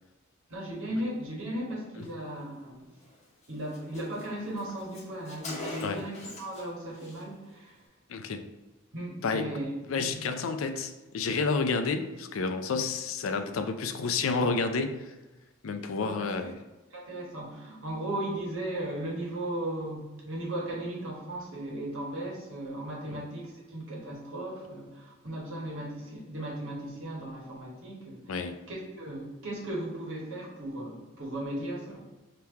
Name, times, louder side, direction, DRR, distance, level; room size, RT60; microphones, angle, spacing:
voice 1, 0.5-2.9 3.5-7.8 8.9-9.7 10.0-10.1 16.0-16.3 16.9-28.3 28.7-32.0, right 1 dB, 65° right, -3 dB, 1.5 m, -36 dB
Car, 3.0-3.2 3.4-3.5 3.7-6.7 6.9-7.2, left 2 dB, 35° left, 1.0 m, -43 dB
voice 2, 8.1-8.5 9.2-9.5 9.9-15.1 15.6-16.6 28.3-28.6, left 4 dB, 75° left, 7 dB, 0.4 m, -30 dB
3.5 x 2.9 x 4.5 m, 1.1 s
head